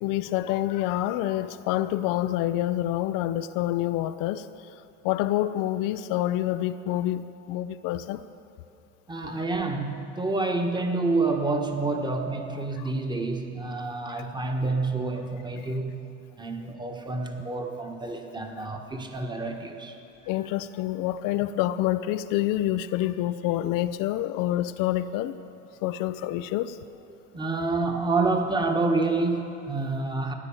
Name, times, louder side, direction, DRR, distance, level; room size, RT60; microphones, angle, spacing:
voice 1, 0.0-4.4 5.0-7.2 7.5-8.2 20.3-25.3 25.8-26.7, left 14 dB, 60° left, 12 dB, 0.6 m, -27 dB
voice 2, 9.1-16.0 16.3-20.0 27.1-30.3, right 3 dB, 10° right, 3 dB, 1.5 m, -28 dB
15.0 x 9.9 x 7.2 m, 2.7 s
supercardioid pair, 100°, 38 cm